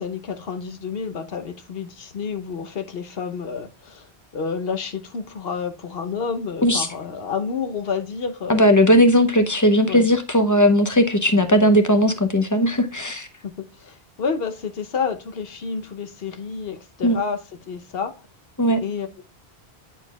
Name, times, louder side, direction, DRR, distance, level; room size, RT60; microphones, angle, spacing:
voice 1, 0.0-8.6 9.9-10.1 13.4-17.4 17.7-18.1 18.8-19.2, left 5 dB, 60° left, 1.1 m, -29 dB
voice 2, 8.5-13.3 17.0-17.2 18.6-18.8, equal, 20° left, 0.6 m, -17 dB
10.0 x 4.4 x 2.3 m
omnidirectional pair, 1.1 m